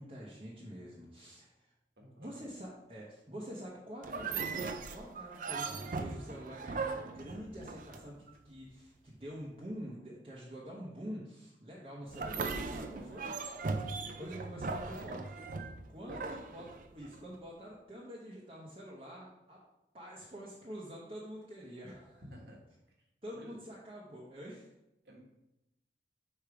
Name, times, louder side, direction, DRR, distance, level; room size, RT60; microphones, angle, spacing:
voice 1, 0.0-1.7 2.2-8.1 8.4-13.3 14.2-19.6 19.9-22.2 23.2-24.7, equal, 35° right, -5 dB, 0.9 m, -46 dB
voice 2, 2.0-2.4 13.1-13.2 16.1-16.2 22.2-22.6 23.3-23.5 25.0-25.2, equal, 75° right, 0 dB, 1.5 m, -51 dB
sound 1, 4.0-8.3 12.1-17.2, right 4 dB, 50° right, 0.4 m, -39 dB
5.1 x 4.4 x 4.7 m, 0.90 s
head